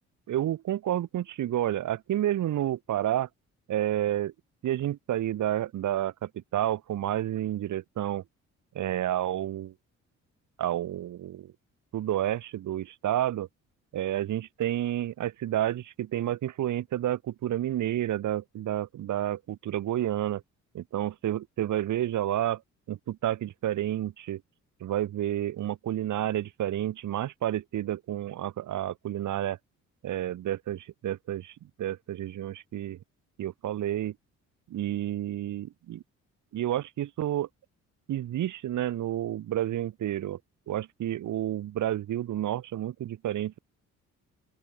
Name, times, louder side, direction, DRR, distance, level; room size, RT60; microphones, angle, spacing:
voice 1, 0.3-3.3 3.7-4.3 4.6-8.2 8.7-9.7 10.6-11.5 11.9-13.5 13.9-20.4 20.7-22.6 22.9-24.4 24.8-29.6 30.0-33.0 33.4-34.1 34.7-36.0 36.5-37.5 38.1-40.4 40.7-43.6, right 12 dB, 75° right, 3.8 m, -30 dB
open air
cardioid pair, 90°, 30 cm